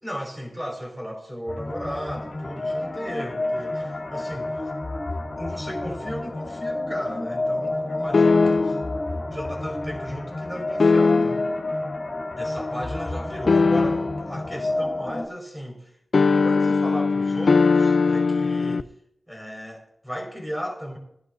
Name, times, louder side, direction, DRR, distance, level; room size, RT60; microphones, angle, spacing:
voice 1, 0.0-4.6 5.3-8.7 9.3-11.4 12.4-18.9 19.3-21.0, equal, 5° right, 2 dB, 5.0 m, -35 dB
sound 1, 1.5-15.3, left 2 dB, 45° left, 3.4 m, -30 dB
sound 2, 8.1-8.9 10.8-11.6 13.5-14.3 16.1-18.8, left 4 dB, 65° left, 0.4 m, -19 dB
20.5 x 11.0 x 2.6 m, 0.75 s
cardioid pair, 60°, 0 cm